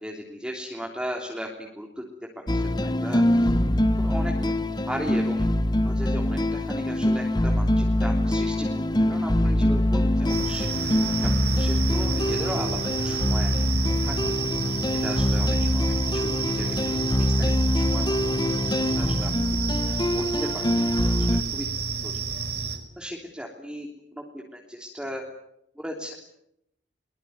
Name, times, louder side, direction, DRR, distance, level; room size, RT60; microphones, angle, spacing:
voice 1, 0.0-2.0 2.5-3.5 4.0-4.3 4.9-5.5 5.8-8.7 9.1-10.7 11.2-11.3 11.6-13.5 14.0-14.1 15.0-17.4 17.7-18.1 19.0-19.3 20.1-20.6 21.2-21.7 22.0-22.1 23.0-25.2 25.8-26.2, equal, 5° right, 0 dB, 3.4 m, -36 dB
sound 1, 2.5-21.4, left 1 dB, 25° left, 1.3 m, -24 dB
sound 2, 10.3-22.8, right 5 dB, 65° right, 4.9 m, -31 dB
23.5 x 22.5 x 9.6 m, 0.79 s
head